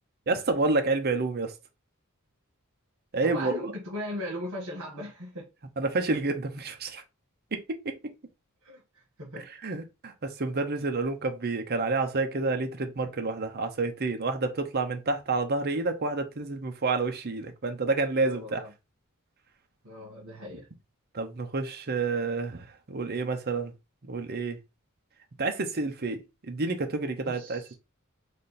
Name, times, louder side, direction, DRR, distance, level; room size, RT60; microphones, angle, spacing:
voice 1, 0.3-1.5 3.1-3.5 5.8-7.0 7.5-8.1 9.6-18.6 21.1-23.7 24.0-24.6 25.4-27.7, right 3 dB, 50° right, 0.7 m, -29 dB
voice 2, 3.2-5.5 8.6-9.4 18.2-18.7 19.8-20.7 27.2-27.7, left 1 dB, 85° right, 1.5 m, -38 dB
3.3 x 2.6 x 4.2 m
head